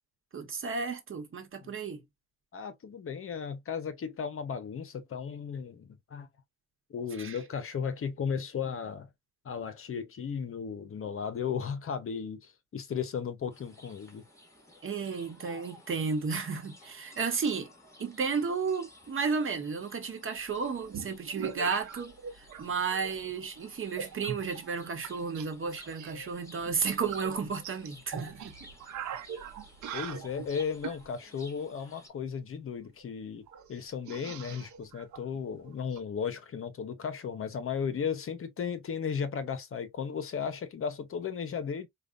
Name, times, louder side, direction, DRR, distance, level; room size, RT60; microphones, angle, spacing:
voice 1, 0.3-2.0 7.2-7.4 14.8-17.7 18.0-28.5, right 5 dB, 45° right, 1.1 m, -33 dB
voice 2, 2.5-6.3 6.9-9.1 9.4-14.2 29.9-41.9, left 6 dB, 45° left, 0.8 m, -35 dB
sound 1, 13.5-32.1, left 1 dB, 10° left, 1.9 m, -55 dB
sound 2, 20.5-22.6 22.9-23.4 23.9-25.5 25.8-31.0 32.7-32.8 33.0-33.1 33.5-36.0, right 8 dB, 70° right, 0.8 m, -42 dB
4.8 x 2.3 x 2.5 m
cardioid pair, 90°, 30 cm